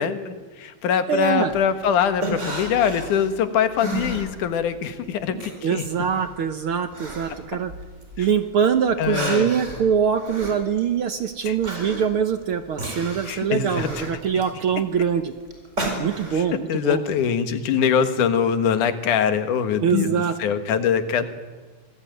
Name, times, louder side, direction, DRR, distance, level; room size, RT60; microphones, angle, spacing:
voice 1, 0.0-5.9 8.2-8.3 9.0-9.5 11.5-11.6 13.3-14.1 14.7-14.8 16.3-16.4 16.7-21.3, left 7 dB, 90° left, 10 dB, 3.0 m, -23 dB
voice 2, 1.1-1.5 5.6-7.7 8.2-15.3 16.0-17.0 19.8-20.3, right 7 dB, 60° right, 9 dB, 1.5 m, -23 dB
sound 1, 1.5-4.8 5.1-8.4 8.8-16.5, right 1 dB, 20° right, 4.9 m, -33 dB
26.0 x 19.0 x 9.3 m, 1.3 s
omnidirectional pair, 3.5 m